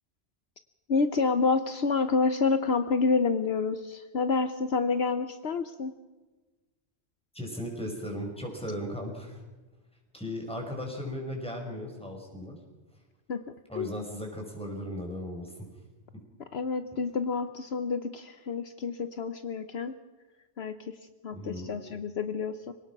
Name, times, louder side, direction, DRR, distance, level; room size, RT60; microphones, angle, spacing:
voice 1, 0.9-5.9 13.3-13.4 13.8-13.9 16.5-19.9 20.6-20.9 21.2-22.7, left 4 dB, 65° left, 10 dB, 1.1 m, -28 dB
voice 2, 7.3-9.4 10.1-12.6 13.7-15.7 21.3-21.7, equal, 5° left, 1 dB, 5.3 m, -36 dB
26.0 x 18.0 x 6.0 m, 1.2 s
omnidirectional pair, 1.2 m